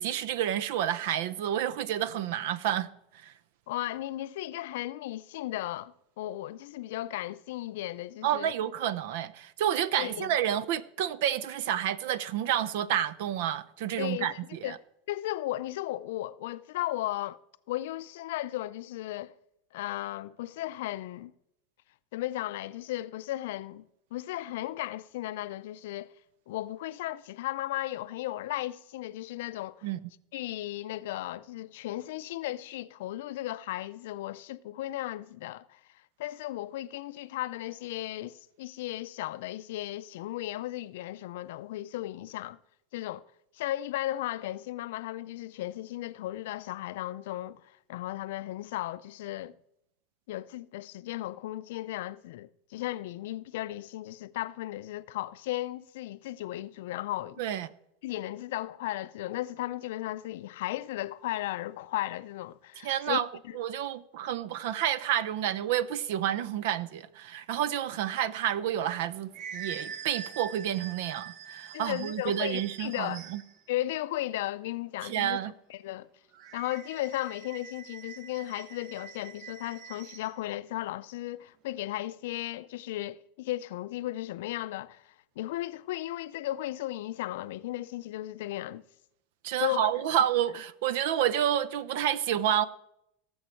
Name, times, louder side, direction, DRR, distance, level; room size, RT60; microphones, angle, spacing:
voice 1, 0.0-2.9 3.2-3.3 8.2-14.8 29.8-30.0 57.4-57.7 62.8-63.3 63.5-73.4 75.0-75.5 89.4-92.7, right 10 dB, 70° right, 0.6 m, -29 dB
voice 2, 3.7-8.5 10.0-10.4 14.0-14.7 15.1-17.4 17.7-19.3 19.7-21.3 22.1-23.8 24.1-26.1 26.5-29.9 30.3-35.8 36.2-42.6 42.9-43.3 43.5-49.6 50.3-57.4 58.0-63.6 71.7-73.2 73.7-75.4 75.7-76.1 76.5-88.8 89.6-89.9, left 15 dB, 75° left, 0.4 m, -35 dB
sound 1, 68.8-73.6 76.3-80.3, right 7 dB, 45° right, 0.9 m, -44 dB
18.0 x 7.1 x 4.4 m
supercardioid pair, 135°, 0 cm